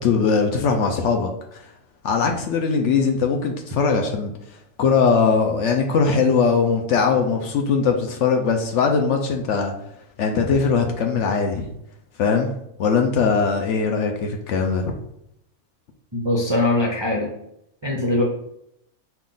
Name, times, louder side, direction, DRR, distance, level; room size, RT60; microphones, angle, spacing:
voice 1, 0.0-1.6 2.0-4.3 4.8-9.7 10.2-11.7 12.2-12.5 12.8-14.9, left 5 dB, 65° left, 3 dB, 0.8 m, -20 dB
voice 2, 16.1-17.3 17.8-18.2, left 2 dB, 35° right, -2 dB, 0.4 m, -21 dB
5.7 x 2.4 x 3.8 m, 0.77 s
omnidirectional pair, 1.5 m